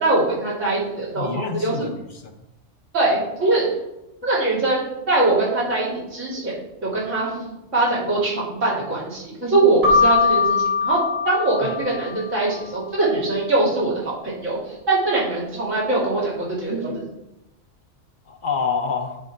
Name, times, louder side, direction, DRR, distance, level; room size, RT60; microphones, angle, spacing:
voice 1, 0.0-1.9 2.9-3.7 4.2-6.6 6.8-11.0 11.2-13.9 14.2-14.6 14.9-17.0, right 2 dB, 80° right, -5 dB, 3.0 m, -22 dB
voice 2, 1.1-2.2 11.6-11.8 18.3-19.2, left 5 dB, 55° left, 6 dB, 0.6 m, -27 dB
Keyboard (musical), 9.8-12.4, left 5 dB, 40° right, 2.2 m, -21 dB
10.0 x 3.7 x 4.2 m, 0.92 s
omnidirectional pair, 1.3 m